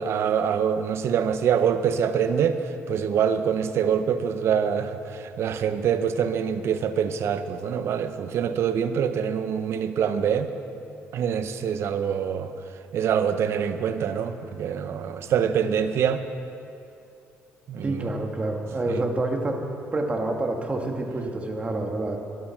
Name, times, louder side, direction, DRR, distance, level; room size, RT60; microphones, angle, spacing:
voice 1, 0.0-2.6 2.9-10.5 11.1-12.5 12.9-16.2 17.7-18.1 18.9-19.0, right 8 dB, 65° right, 10 dB, 0.8 m, -25 dB
voice 2, 17.8-19.6 19.9-22.2, right 2 dB, 25° right, 2 dB, 1.8 m, -27 dB
13.0 x 11.0 x 5.9 m, 2.7 s
cardioid pair, 95°, 5 cm